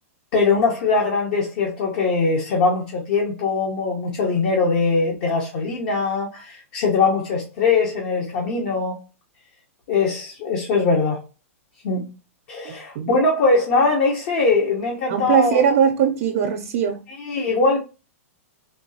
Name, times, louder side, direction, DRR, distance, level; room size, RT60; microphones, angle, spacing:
voice 1, 0.3-9.0 9.9-11.2 11.8-12.1 12.5-15.6 17.2-17.8, left 4 dB, 55° left, 0.9 m, -21 dB
voice 2, 12.6-13.2 15.1-17.0, right 8 dB, 55° right, 0.6 m, -21 dB
3.5 x 2.9 x 2.8 m
hypercardioid pair, 110°, 8 cm